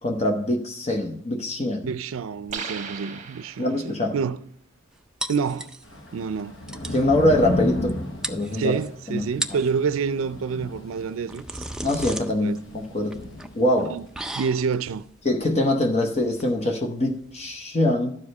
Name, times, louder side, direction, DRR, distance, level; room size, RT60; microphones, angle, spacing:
voice 1, 0.0-1.9 3.6-4.1 6.9-7.9 8.3-8.8 9.1-9.2 9.5-9.6 11.8-13.2 13.5-13.9 15.2-18.1, left 1 dB, 35° left, 0.9 m, -23 dB
voice 2, 1.8-4.4 5.3-5.7 6.1-6.6 8.5-11.7 12.4-12.6 13.9-14.1 14.3-15.0, right 5 dB, 90° right, 0.4 m, -28 dB
sound 1, 2.5-4.1, right 6 dB, 40° right, 1.1 m, -36 dB
sound 2, 5.2-6.1 6.4-6.5 6.7-7.1 7.9-8.0 8.2-8.9 9.3-9.7 10.9-17.6, right 1 dB, 5° right, 0.4 m, -36 dB
Thunder / Rain, 5.8-14.2, left 1 dB, 70° left, 1.2 m, -34 dB
12.0 x 4.9 x 5.4 m
head